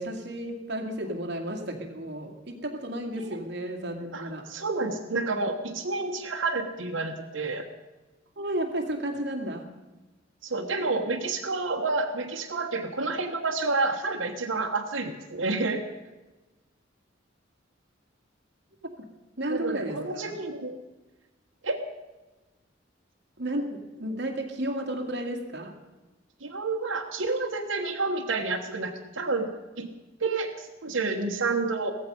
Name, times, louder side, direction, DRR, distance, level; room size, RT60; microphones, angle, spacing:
voice 1, 0.0-4.5 8.4-9.7 18.8-19.1 19.4-20.4 23.4-25.8, right 1 dB, 60° right, 4 dB, 2.2 m, -33 dB
voice 2, 4.1-7.7 10.4-15.8 19.5-20.8 21.6-21.8 26.4-29.9 30.2-31.9, right 3 dB, 85° right, 0 dB, 1.4 m, -29 dB
16.5 x 14.5 x 5.4 m, 1.1 s
head